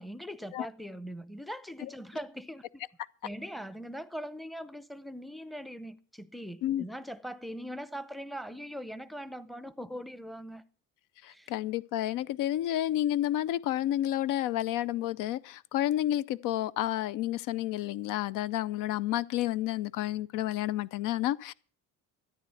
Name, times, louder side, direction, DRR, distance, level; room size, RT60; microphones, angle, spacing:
voice 1, 0.0-2.8 3.2-10.6 11.2-11.5, equal, ahead, 0.6 m, -41 dB
voice 2, 11.2-21.5, left 13 dB, 85° left, 0.6 m, -30 dB
14.0 x 9.3 x 7.0 m
cardioid pair, 140°, 31 cm